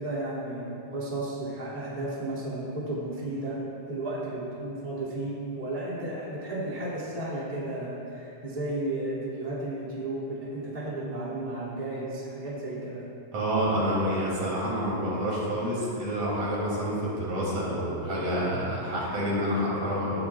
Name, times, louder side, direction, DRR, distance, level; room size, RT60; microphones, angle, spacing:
voice 1, 0.0-3.6 3.9-13.0, right 2 dB, 15° right, -9 dB, 2.6 m, -33 dB
voice 2, 13.3-20.3, equal, 75° right, -6 dB, 4.4 m, -28 dB
18.0 x 11.5 x 2.5 m, 2.8 s
omnidirectional pair, 3.3 m